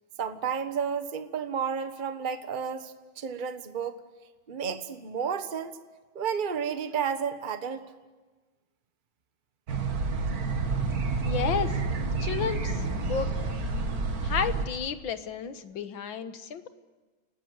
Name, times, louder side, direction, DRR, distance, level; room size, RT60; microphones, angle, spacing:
voice 1, 0.2-4.0 4.5-5.8 6.1-7.8, right 7 dB, 30° right, 9 dB, 1.2 m, -31 dB
sound 1, 9.7-14.7, right 3 dB, 50° right, 2.1 m, -29 dB
voice 2, 11.3-11.8 12.2-13.3 14.2-16.7, left 7 dB, 70° left, 10 dB, 2.0 m, -32 dB
30.0 x 19.5 x 8.0 m, 1.3 s
omnidirectional pair, 2.2 m